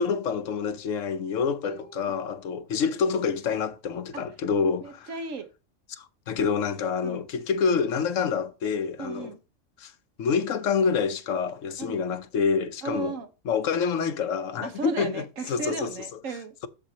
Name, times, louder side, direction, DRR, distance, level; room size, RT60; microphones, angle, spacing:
voice 1, 0.0-5.1 5.9-9.3 9.8-9.9 10.2-13.1 13.5-15.9, left 6 dB, 70° left, 1.1 m, -27 dB
voice 2, 1.6-2.2 4.1-4.2 4.8-5.5 7.0-7.3 9.0-9.4 11.8-12.0 12.8-13.3 14.6-16.5, right 4 dB, 70° right, 1.4 m, -36 dB
7.4 x 7.3 x 2.8 m
omnidirectional pair, 1.4 m